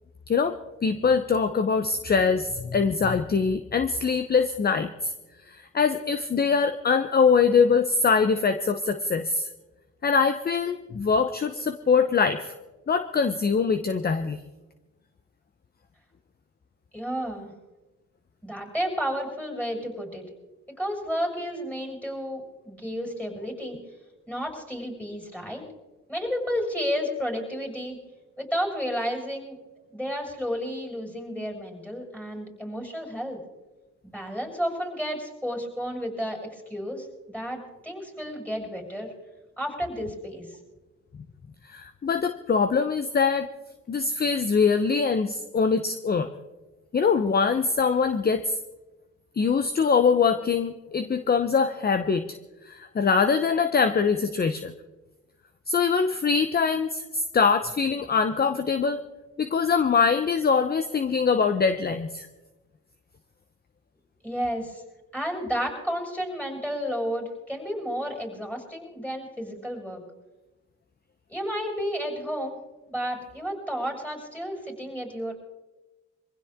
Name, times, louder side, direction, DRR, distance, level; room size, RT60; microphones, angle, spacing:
voice 1, 0.8-5.1 5.5-9.5 10.0-12.5 12.9-14.4 41.7-43.5 43.9-46.3 46.9-48.6 49.4-52.4 52.6-54.7 55.7-59.0 59.4-62.3, left 5 dB, 30° left, 10 dB, 0.9 m, -23 dB
voice 2, 16.9-17.5 18.4-20.2 20.8-23.8 24.3-25.6 26.1-28.0 28.4-29.6 29.9-33.4 34.0-39.1 39.6-40.6 64.2-64.8 65.1-70.0 71.3-72.6 72.9-75.3, equal, 5° left, 1 dB, 6.8 m, -31 dB
24.0 x 16.0 x 3.7 m, 1.1 s
cardioid pair, 90°, 30 cm